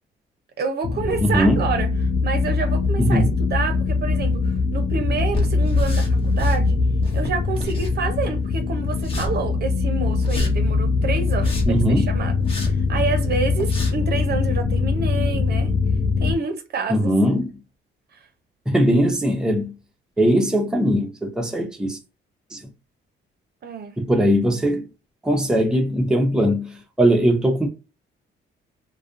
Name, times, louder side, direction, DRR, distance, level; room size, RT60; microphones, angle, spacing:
voice 1, 0.6-1.9 2.2-6.8 7.1-12.3 12.6-15.7 16.2-17.1 23.6-23.9, right 4 dB, 55° right, 0.6 m, -28 dB
sound 1, 0.8-16.4, left 4 dB, 45° left, 0.5 m, -22 dB
voice 2, 1.2-1.6 3.0-3.3 11.7-12.1 16.9-17.5 18.7-19.7 20.2-22.0 22.5-22.6 24.0-24.8 25.2-27.7, equal, 5° right, 0.6 m, -20 dB
sound 2, 5.3-6.6 6.9-8.3 8.9-9.3 10.2-10.5 11.2-11.8 12.4-12.7 13.2-13.3 13.6-13.9, left 1 dB, 30° left, 1.0 m, -32 dB
2.4 x 2.1 x 2.4 m
cardioid pair, 90°, 20 cm